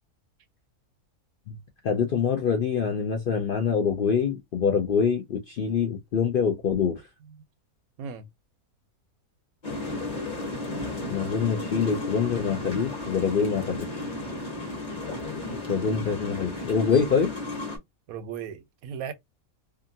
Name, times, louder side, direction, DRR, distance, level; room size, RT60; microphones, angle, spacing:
voice 1, 1.8-7.0 11.1-13.9 15.7-17.3, left 6 dB, 65° left, 0.5 m, -25 dB
sound 1, 9.6-17.8, left 2 dB, 35° left, 1.1 m, -34 dB
voice 2, 18.1-19.1, right 7 dB, 80° right, 1.0 m, -37 dB
2.8 x 2.4 x 2.6 m
omnidirectional pair, 1.5 m